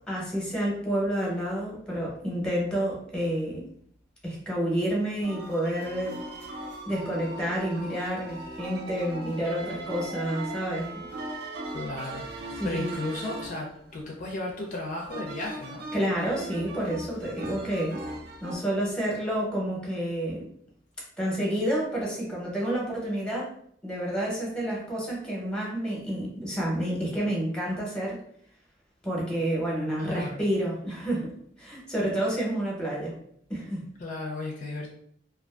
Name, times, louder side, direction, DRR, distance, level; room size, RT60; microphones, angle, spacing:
voice 1, 0.1-3.6 4.2-11.0 12.6-12.9 15.9-18.0 18.4-20.5 21.2-23.5 23.8-28.2 29.0-31.3 31.6-33.1 33.5-33.8, right 1 dB, 5° left, -4 dB, 0.7 m, -29 dB
sound 1, 5.2-18.6, right 2 dB, 60° right, 0.5 m, -39 dB
voice 2, 11.7-15.9 30.0-30.4 34.0-35.0, left 2 dB, 45° left, -1 dB, 0.4 m, -35 dB
2.5 x 2.3 x 2.3 m, 0.66 s
head